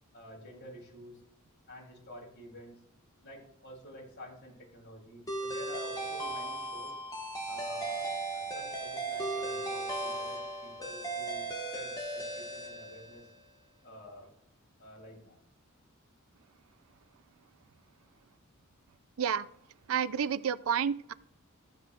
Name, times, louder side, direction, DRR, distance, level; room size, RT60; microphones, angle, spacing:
voice 1, 0.1-1.2 1.7-2.8 3.2-7.0 7.5-13.3 13.8-14.3 14.8-15.4, equal, 50° left, -3 dB, 3.2 m, -50 dB
sound 1, 5.3-13.4, right 2 dB, 20° left, 1.5 m, -37 dB
voice 2, 19.9-21.1, right 7 dB, 75° right, 16 dB, 0.4 m, -30 dB
14.0 x 7.8 x 2.4 m, 0.73 s
head